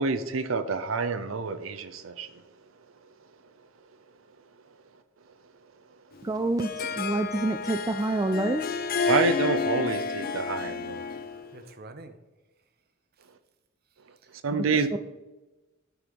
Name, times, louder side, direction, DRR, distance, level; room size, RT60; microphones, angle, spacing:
voice 1, 0.0-2.4 9.1-11.1 14.4-14.9, right 4 dB, 75° right, 10 dB, 0.7 m, -28 dB
Harp, 6.2-11.5, left 5 dB, 50° left, 0.6 m, -30 dB
voice 2, 6.2-8.6 14.5-14.7 14.9-15.0, right 2 dB, 20° right, 9 dB, 0.3 m, -27 dB
voice 3, 11.5-12.2 14.2-14.3 14.6-15.0, right 2 dB, 50° right, 9 dB, 0.9 m, -46 dB
12.0 x 4.7 x 5.2 m, 1.1 s
head